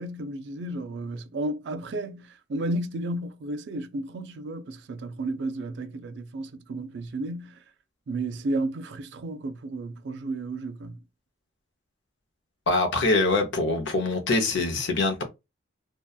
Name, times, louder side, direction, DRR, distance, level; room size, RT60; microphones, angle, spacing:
voice 1, 0.0-7.6 8.1-11.0, right 2 dB, 60° right, 0.4 m, -33 dB
voice 2, 12.7-15.2, left 3 dB, 65° left, 0.6 m, -24 dB
2.7 x 2.2 x 2.3 m
head